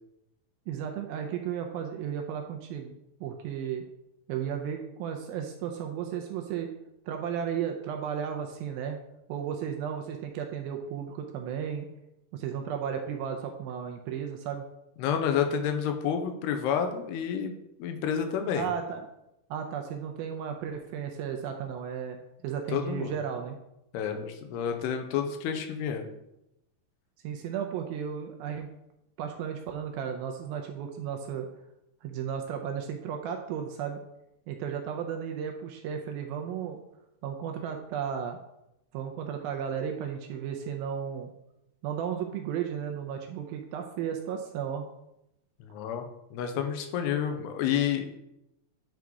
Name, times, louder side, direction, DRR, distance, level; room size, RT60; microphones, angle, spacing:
voice 1, 0.7-3.0 3.2-3.8 4.3-6.7 7.1-9.0 9.3-11.9 12.3-14.6 18.6-19.1 19.5-22.2 22.4-23.6 27.2-28.7 29.2-31.5 32.0-34.0 34.5-36.8 37.2-38.4 38.9-41.3 41.8-44.9, right 8 dB, 80° right, 3 dB, 2.2 m, -34 dB
voice 2, 15.0-17.5 17.8-18.7 22.7-23.1 23.9-26.1 45.6-48.2, left 8 dB, 85° left, 5 dB, 2.8 m, -29 dB
9.4 x 3.8 x 4.7 m, 0.86 s
omnidirectional pair, 4.7 m